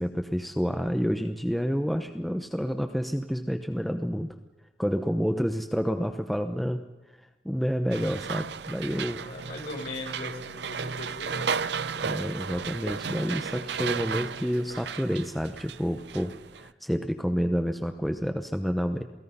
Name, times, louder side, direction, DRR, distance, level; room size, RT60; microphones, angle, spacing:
voice 1, 0.0-4.3 4.8-6.8 7.4-9.3 12.0-19.0, equal, ahead, 6 dB, 0.8 m, -29 dB
sound 1, 7.9-16.7, right 6 dB, 75° right, 0.6 m, -34 dB
voice 2, 9.1-11.4 12.0-12.2, left 2 dB, 55° left, -1 dB, 6.7 m, -39 dB
28.0 x 18.5 x 5.6 m, 1.1 s
head